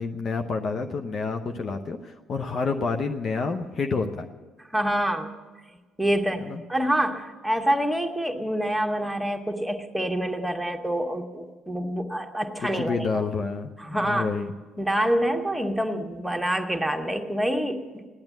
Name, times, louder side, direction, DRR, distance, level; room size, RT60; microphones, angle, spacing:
voice 1, 0.0-4.3 6.4-6.6 12.6-14.5, left 4 dB, 40° left, 5 dB, 0.8 m, -29 dB
voice 2, 4.7-5.3 6.0-13.2 13.8-14.3 14.8-18.0, right 1 dB, ahead, 3 dB, 1.5 m, -26 dB
16.0 x 10.5 x 8.5 m, 1.4 s
figure-of-eight pair, 50°, 0 cm